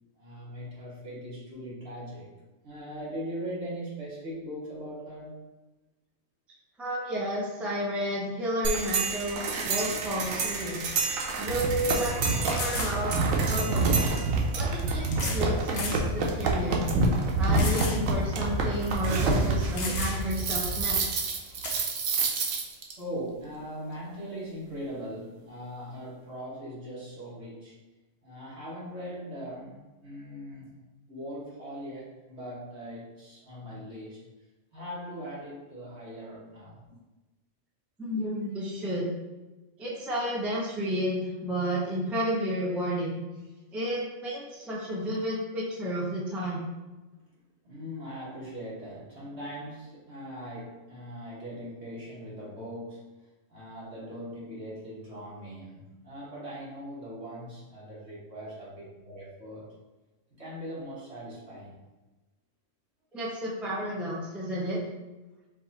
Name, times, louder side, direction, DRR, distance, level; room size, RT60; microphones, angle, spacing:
voice 1, 0.2-2.3 2.6-5.4 23.0-27.8 28.2-30.7 31.1-34.2 34.7-36.9 47.6-53.2 53.5-59.7 60.3-61.8, equal, 55° right, -7 dB, 1.8 m, -40 dB
voice 2, 6.8-14.1 14.5-16.8 17.4-21.2 38.0-39.1 39.8-43.2 43.7-46.7 63.1-64.8, equal, ahead, -5 dB, 0.6 m, -32 dB
sound 1, 8.6-22.9, right 3 dB, 85° right, 1.1 m, -27 dB
sound 2, 10.7-10.8 11.3-11.4 12.5-13.0 14.1-14.2 15.1-15.5 15.7-16.0 16.5-16.6 17.6-18.0 18.4-18.5 19.3-19.4 19.8-20.4 21.6-21.8, left 3 dB, 50° left, 0.5 m, -34 dB
4.5 x 2.5 x 4.0 m, 1.1 s
omnidirectional pair, 1.4 m